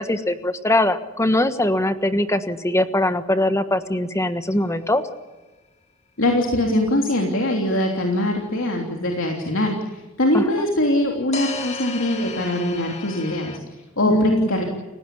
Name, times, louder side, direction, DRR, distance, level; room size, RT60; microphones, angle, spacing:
voice 1, 0.0-5.0 10.3-10.7 14.1-14.5, left 1 dB, 15° left, 10 dB, 1.3 m, -21 dB
sound 1, 4.4-4.5 11.3-13.6, left 3 dB, 35° left, 2.4 m, -33 dB
voice 2, 6.2-13.6 14.0-14.6, left 1 dB, 80° left, 1 dB, 3.3 m, -22 dB
29.5 x 16.5 x 8.6 m, 1.2 s
head